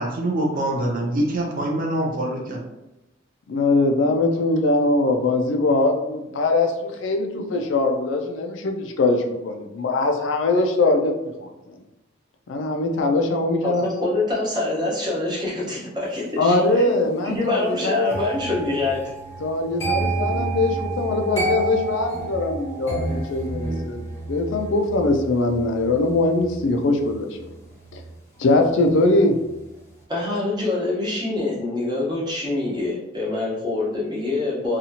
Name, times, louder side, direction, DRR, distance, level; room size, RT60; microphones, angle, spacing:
voice 1, 0.0-2.6, right 1 dB, 45° right, 0 dB, 0.5 m, -24 dB
voice 2, 3.5-11.5 12.5-13.9 16.4-18.1 19.4-27.3 28.4-29.4, left 2 dB, 70° left, 4 dB, 0.4 m, -21 dB
voice 3, 13.6-16.9 17.2-19.0 30.1-34.8, left 2 dB, 20° right, -6 dB, 0.9 m, -25 dB
sound 1, 18.1-29.1 29.3-29.7, right 3 dB, 15° left, 1.0 m, -30 dB
2.8 x 2.4 x 2.8 m, 0.95 s
head